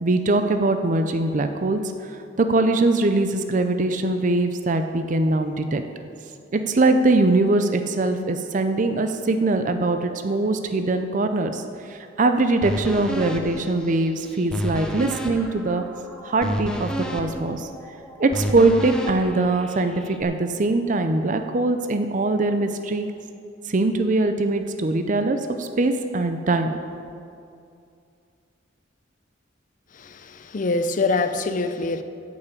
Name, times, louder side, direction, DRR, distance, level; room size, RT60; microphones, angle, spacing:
voice 1, 0.0-1.8 2.1-5.8 6.5-11.6 11.9-15.8 16.2-17.7 18.2-23.1 23.7-26.7, right 2 dB, 40° right, 7 dB, 0.5 m, -22 dB
sound 1, 12.6-20.2, equal, 5° left, 0.8 m, -31 dB
voice 2, 29.9-32.0, left 3 dB, 45° left, 10 dB, 0.6 m, -25 dB
10.5 x 5.7 x 8.3 m, 2.4 s
head